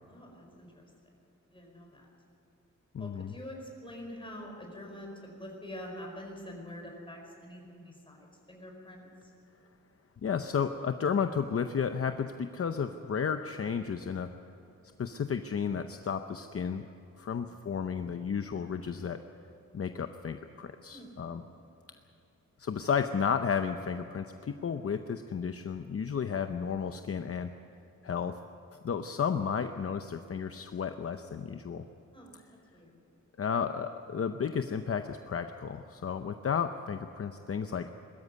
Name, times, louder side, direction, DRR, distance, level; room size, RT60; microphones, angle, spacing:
voice 1, 0.1-0.9 1.5-2.1 3.0-9.1 20.9-21.1 32.1-32.3 32.7-33.0, left 1 dB, 15° left, 0 dB, 4.9 m, -45 dB
voice 2, 2.9-3.3 10.2-14.3 15.0-16.9 17.2-19.2 19.7-21.4 22.6-27.5 28.0-28.4 28.8-31.9 33.4-37.9, left 6 dB, 50° left, 8 dB, 0.7 m, -32 dB
21.5 x 13.5 x 9.6 m, 3.0 s
wide cardioid pair, 150°, 30 cm